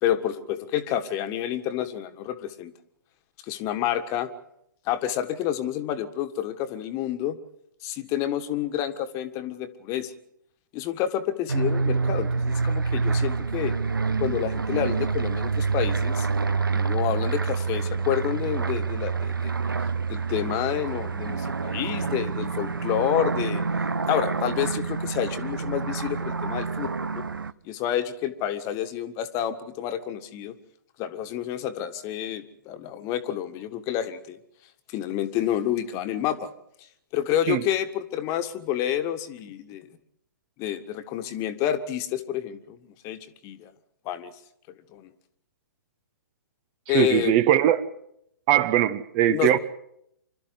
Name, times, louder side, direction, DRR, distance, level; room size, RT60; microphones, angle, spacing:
voice 1, 0.0-2.7 3.4-4.3 4.8-7.4 7.8-10.1 10.7-13.7 14.2-16.3 16.7-19.5 20.1-23.6 24.1-27.2 27.6-30.5 31.0-34.4 34.9-36.5 37.1-39.9 40.6-42.8 43.0-43.7 44.0-44.3 44.9-45.1 46.9-47.3 49.3-49.6, left 11 dB, 30° left, 10 dB, 1.7 m, -29 dB
sound 1, 11.5-27.5, right 4 dB, 80° right, 0.8 m, -27 dB
voice 2, 46.9-47.8 48.5-49.6, right 12 dB, 30° right, 14 dB, 1.0 m, -20 dB
26.5 x 13.0 x 9.5 m, 0.76 s
figure-of-eight pair, 125°, 11 cm